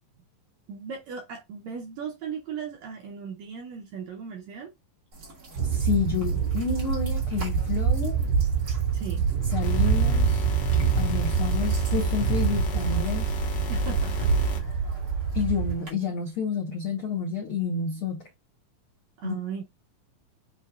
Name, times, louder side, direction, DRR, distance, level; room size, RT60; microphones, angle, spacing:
voice 1, 0.7-4.7 8.9-9.3 13.7-14.6 19.2-19.6, right 7 dB, 75° right, 1.6 m, -37 dB
sound 1, 5.1-15.9, right 3 dB, 40° right, 1.4 m, -42 dB
voice 2, 5.6-8.2 9.5-10.4 11.0-13.3 15.3-18.2 19.2-19.4, left 6 dB, 90° left, 1.1 m, -29 dB
sound 2, 5.6-15.8, right 7 dB, 60° right, 4.9 m, -25 dB
sound 3, 9.6-14.6, left 2 dB, 60° left, 1.6 m, -32 dB
8.1 x 2.8 x 2.3 m
omnidirectional pair, 3.9 m